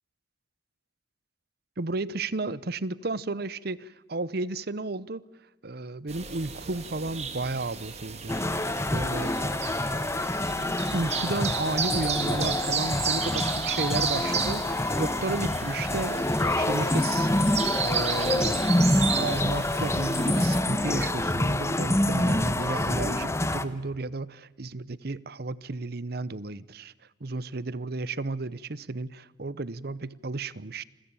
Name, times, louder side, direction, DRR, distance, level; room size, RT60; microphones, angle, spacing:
voice 1, 1.8-5.2 5.6-8.4 8.9-9.4 10.9-16.2 16.5-17.3 17.8-18.6 19.2-26.9 27.2-30.8, right 3 dB, 60° right, 0.8 m, -33 dB
sound 1, 6.1-20.6, right 6 dB, 40° right, 2.9 m, -33 dB
sound 2, 8.3-23.6, left 1 dB, 15° left, 1.1 m, -26 dB
28.5 x 22.0 x 9.0 m
head